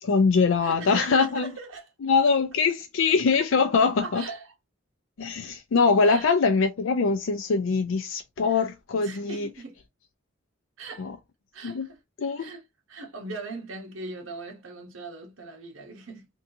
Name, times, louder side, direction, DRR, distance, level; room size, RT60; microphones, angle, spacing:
voice 1, 0.0-1.5 2.0-4.2 5.2-9.5 11.0-11.2 11.6-11.9 12.2-12.5, left 4 dB, 75° left, 0.4 m, -23 dB
voice 2, 0.6-1.9 4.0-4.5 6.0-6.3 8.5-8.6 9.0-9.8 10.8-11.1 11.5-12.0 12.4-16.3, right 3 dB, 80° right, 1.1 m, -40 dB
3.5 x 2.6 x 2.7 m
head